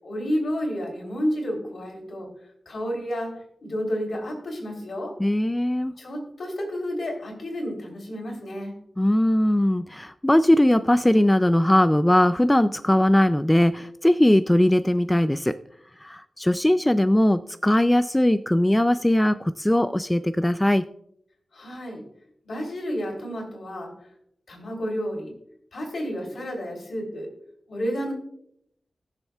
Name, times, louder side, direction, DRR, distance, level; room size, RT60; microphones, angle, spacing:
voice 1, 0.0-2.3 2.6-5.2 6.0-8.8 21.5-22.0 22.4-23.9 24.5-25.3 25.7-27.3 27.7-28.1, equal, 70° left, 0 dB, 3.4 m, -31 dB
voice 2, 5.2-5.9 9.0-15.6 16.0-20.8, left 1 dB, 10° left, 12 dB, 0.3 m, -20 dB
20.5 x 7.1 x 2.3 m, 0.73 s
wide cardioid pair, 80°, 0 cm